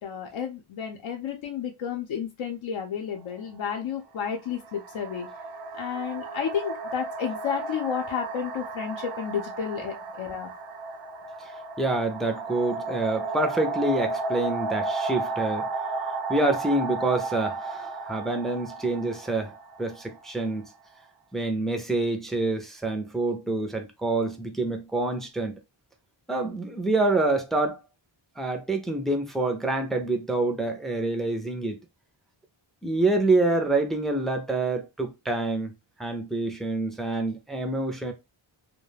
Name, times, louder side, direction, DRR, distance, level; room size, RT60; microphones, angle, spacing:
voice 1, 0.0-5.3 5.7-10.5, left 7 dB, 75° left, 0.6 m, -31 dB
sound 1, 3.2-3.3 4.3-20.9, right 3 dB, 60° right, 0.5 m, -34 dB
voice 2, 11.8-15.7 16.3-19.5 19.8-20.6 21.3-25.5 26.3-27.8 28.4-31.8 32.8-35.7 36.0-38.1, right 2 dB, ahead, 0.3 m, -27 dB
2.3 x 2.2 x 3.1 m
wide cardioid pair, 165°, 47 cm